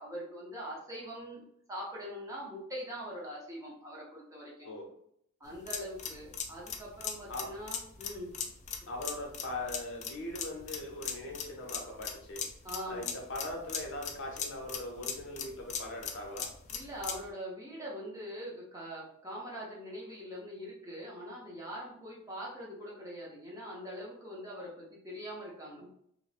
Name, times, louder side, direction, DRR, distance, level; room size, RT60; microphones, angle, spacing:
voice 1, 0.0-1.4 1.7-4.7 5.4-8.3 8.8-8.9 12.6-13.1 16.7-25.9, equal, 15° right, -5 dB, 0.7 m, -43 dB
sound 1, 5.5-17.3, left 7 dB, 30° left, 0.3 m, -39 dB
voice 2, 8.9-12.4 12.8-16.5, left 1 dB, 55° left, 0 dB, 0.7 m, -40 dB
2.5 x 2.1 x 3.2 m, 0.70 s
head